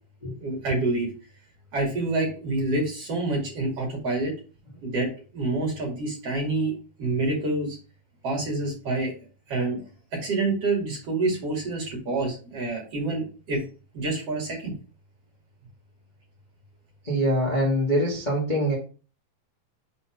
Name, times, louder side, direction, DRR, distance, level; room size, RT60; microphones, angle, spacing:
voice 1, 0.4-1.1 1.7-4.3 4.8-6.7 7.0-7.8 8.2-9.1 9.5-9.8 10.1-13.6 13.9-14.7, right 2 dB, 45° right, -2 dB, 2.8 m, -27 dB
voice 2, 17.0-18.7, equal, 20° left, -4 dB, 1.1 m, -24 dB
6.0 x 4.2 x 5.8 m, 0.37 s
omnidirectional pair, 4.4 m